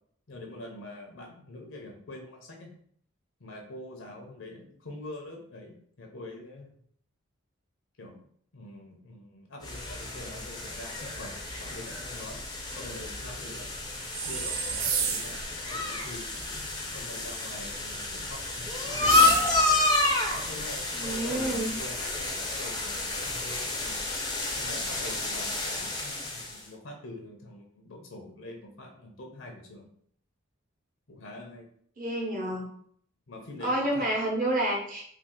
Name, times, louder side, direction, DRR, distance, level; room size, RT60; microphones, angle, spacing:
voice 1, 0.3-2.7 3.4-6.7 8.0-8.2 8.5-12.4 12.8-13.7 14.2-16.3 16.9-19.5 20.3-24.0 24.5-29.9 31.1-31.7 33.3-34.1, left 1 dB, 70° left, 1 dB, 0.6 m, -44 dB
sound 1, 9.6-26.6, left 2 dB, 20° left, 0.5 m, -30 dB
sound 2, 14.1-15.5 19.0-19.8, right 6 dB, 90° right, 0.5 m, -30 dB
voice 2, 20.9-21.7 32.0-32.6 33.6-35.0, right 1 dB, 40° right, -2 dB, 0.9 m, -29 dB
2.7 x 2.4 x 3.7 m, 0.62 s
head